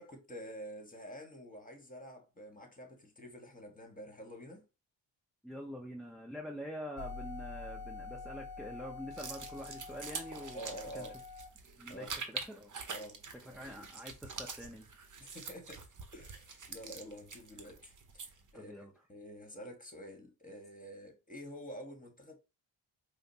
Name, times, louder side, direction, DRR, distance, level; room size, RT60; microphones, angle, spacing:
voice 1, 0.0-4.6 10.5-11.1 11.9-12.1 12.9-13.2 13.7-13.9 15.2-15.8 16.1-22.4, equal, 15° left, 1.3 m, -48 dB
voice 2, 5.4-11.1 11.8-12.7 13.4-14.9 18.5-18.9, equal, ahead, 0.6 m, -46 dB
sound 1, 7.0-11.5, left 4 dB, 45° left, 0.8 m, -46 dB
sound 2, 9.1-18.5, right 5 dB, 40° right, 0.7 m, -46 dB
4.9 x 2.0 x 2.7 m
cardioid pair, 60°, 48 cm